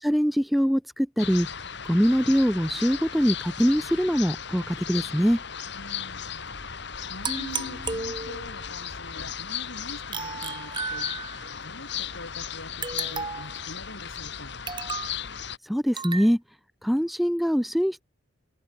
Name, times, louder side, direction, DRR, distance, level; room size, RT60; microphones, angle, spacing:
voice 1, 0.0-1.5 1.9-5.4 15.6-16.4 16.8-18.0, equal, ahead, 0.7 m, -23 dB
sound 1, 1.2-15.6, left 8 dB, 55° left, 1.7 m, -36 dB
voice 2, 5.7-6.5 7.1-11.1 11.6-14.6, left 1 dB, 70° left, 6.3 m, -44 dB
sound 2, 7.2-8.6 10.1-11.5 12.8-13.6 14.7-15.2 16.0-16.3, right 4 dB, 20° right, 6.6 m, -34 dB
open air
head